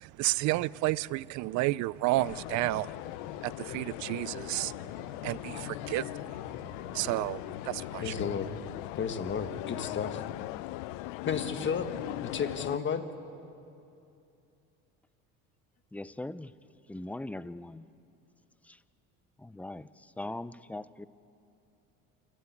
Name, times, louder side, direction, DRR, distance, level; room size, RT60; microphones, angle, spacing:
voice 1, 0.0-3.0 3.4-8.2, right 19 dB, 60° right, 0.5 m, -32 dB
sound 1, 2.1-12.8, left 18 dB, 80° left, 0.5 m, -39 dB
voice 2, 8.0-8.5 9.0-10.2 11.2-11.9 12.2-13.1, left 6 dB, 35° left, 1.6 m, -32 dB
voice 3, 15.9-16.5 16.9-17.9 18.7-18.8 19.4-21.1, left 2 dB, 5° left, 0.4 m, -40 dB
29.0 x 12.5 x 8.5 m
supercardioid pair, 105°, 32 cm